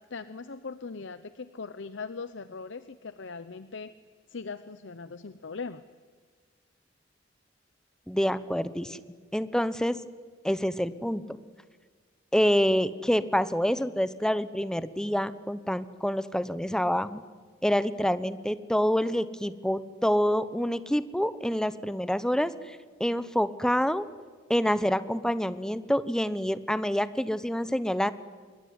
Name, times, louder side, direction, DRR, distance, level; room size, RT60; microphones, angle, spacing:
voice 1, 0.0-3.9 4.3-5.8, left 4 dB, 70° left, 13 dB, 0.8 m, -40 dB
voice 2, 8.1-9.0 9.3-10.0 10.4-11.2 12.3-17.2 17.6-24.1 24.5-28.1, equal, 5° left, 14 dB, 1.0 m, -27 dB
26.5 x 23.0 x 9.5 m, 1.5 s
head